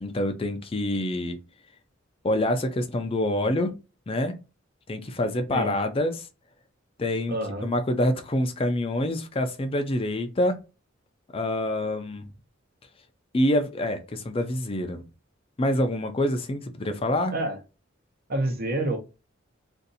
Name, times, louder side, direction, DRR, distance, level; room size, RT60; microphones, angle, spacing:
voice 1, 0.0-1.4 2.2-3.7 4.1-4.3 4.9-6.3 7.0-7.4 7.6-10.6 11.3-12.2 13.3-15.0 15.6-17.3, left 1 dB, 25° left, 0.4 m, -26 dB
voice 2, 7.3-7.7 17.3-17.6 18.3-19.0, right 1 dB, 50° right, 0.9 m, -27 dB
2.6 x 2.5 x 3.9 m
head